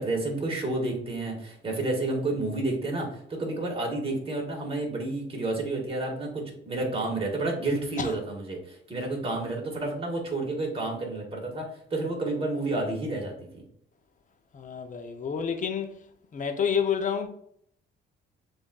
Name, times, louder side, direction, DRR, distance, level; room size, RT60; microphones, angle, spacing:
voice 1, 0.0-13.6, right 2 dB, 30° right, 1.7 m, -30 dB
voice 2, 14.5-16.0 16.3-17.3, left 7 dB, 40° left, 0.6 m, -29 dB
6.9 x 2.6 x 2.3 m
cardioid pair, 90°, 20 cm